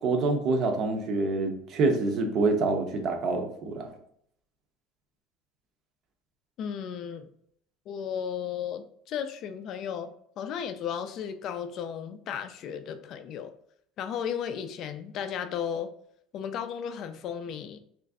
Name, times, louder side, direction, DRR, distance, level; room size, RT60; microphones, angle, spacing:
voice 1, 0.0-3.9, right 3 dB, 35° right, 5 dB, 0.6 m, -26 dB
voice 2, 6.6-7.3 7.9-10.1 10.4-13.5 14.0-15.9 16.3-17.8, left 8 dB, 40° left, 9 dB, 0.3 m, -34 dB
3.1 x 2.5 x 3.5 m, 0.68 s
cardioid pair, 170°, 0 cm